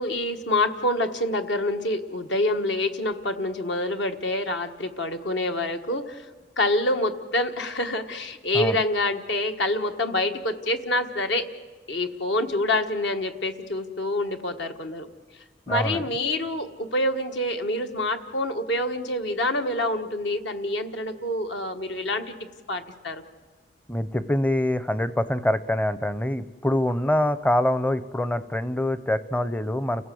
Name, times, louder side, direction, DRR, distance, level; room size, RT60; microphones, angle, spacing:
voice 1, 0.0-6.2 6.6-11.5 11.9-15.1 15.7-22.3 22.7-23.2, left 1 dB, 70° left, 6 dB, 1.4 m, -26 dB
voice 2, 15.7-16.0 23.9-30.1, left 1 dB, 10° left, 14 dB, 0.6 m, -25 dB
30.0 x 16.0 x 7.7 m, 1.4 s
head